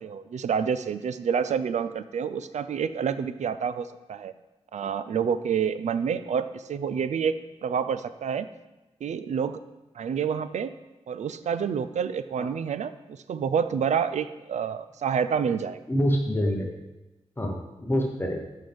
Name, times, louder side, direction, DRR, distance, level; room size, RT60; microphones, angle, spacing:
voice 1, 0.0-4.3 4.7-8.5 9.0-9.6 10.0-10.7 11.1-15.8, right 7 dB, 85° right, 13 dB, 0.4 m, -28 dB
voice 2, 15.9-16.7 17.4-18.4, equal, 20° left, 1 dB, 0.9 m, -26 dB
11.5 x 5.5 x 3.5 m, 1.1 s
wide cardioid pair, 150°, 12 cm